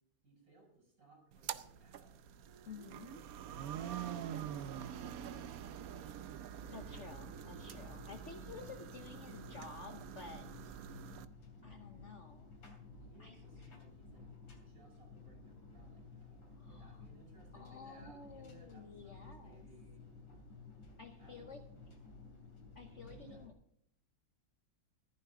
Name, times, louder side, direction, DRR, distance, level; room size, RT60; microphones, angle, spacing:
voice 1, 0.2-2.5 13.1-14.2 14.6-20.0 21.2-21.5 23.0-23.4, right 2 dB, 45° right, 0 dB, 7.2 m, -63 dB
sound 1, 1.3-11.2, right 9 dB, 65° right, 0.9 m, -46 dB
voice 2, 2.6-3.3 6.7-10.8 11.6-12.5 13.2-13.7 16.6-17.1 17.5-19.6 21.0-21.6 22.7-23.5, left 4 dB, 45° left, 6 dB, 1.1 m, -52 dB
sound 2, 6.6-23.5, left 3 dB, 85° left, 3.6 m, -55 dB
14.5 x 12.5 x 3.7 m, 0.72 s
omnidirectional pair, 2.1 m